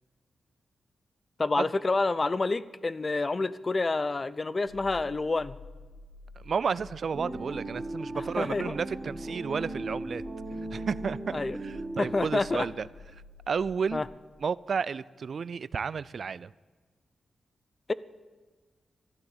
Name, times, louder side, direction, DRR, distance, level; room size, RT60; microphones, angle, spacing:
voice 1, 1.4-5.6 8.1-8.7 11.3-11.6 12.0-12.7 13.9-14.1 17.9-18.0, left 3 dB, 35° left, 18 dB, 0.7 m, -28 dB
sound 1, 4.7-14.0, left 2 dB, 90° left, 2.2 m, -49 dB
voice 2, 6.4-10.2 10.7-12.9 13.5-14.0 14.4-16.5, right 6 dB, 65° right, 19 dB, 0.4 m, -32 dB
sound 2, 7.1-12.3, right 2 dB, 20° right, 3.4 m, -37 dB
13.0 x 11.5 x 9.0 m, 1.3 s
cardioid pair, 60°, 0 cm